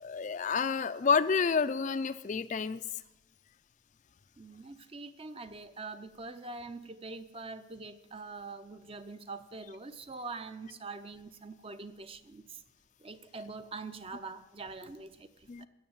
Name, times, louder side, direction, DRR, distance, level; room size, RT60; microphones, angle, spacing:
voice 1, 0.0-2.8 15.5-15.7, left 5 dB, 40° left, 13 dB, 0.3 m, -29 dB
voice 2, 4.4-12.6 13.0-15.7, right 3 dB, 30° right, 11 dB, 0.6 m, -44 dB
14.5 x 6.3 x 8.7 m, 0.98 s
head